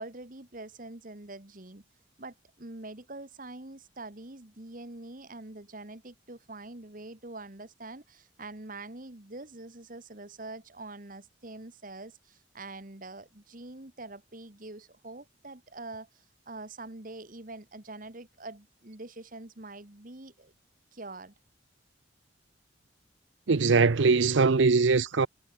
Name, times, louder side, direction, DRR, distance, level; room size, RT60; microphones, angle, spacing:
voice 1, 0.0-1.8 2.2-20.5 20.9-21.3, right 2 dB, 45° right, 1.9 m, -44 dB
voice 2, 23.5-25.3, right 4 dB, 70° right, 0.7 m, -22 dB
head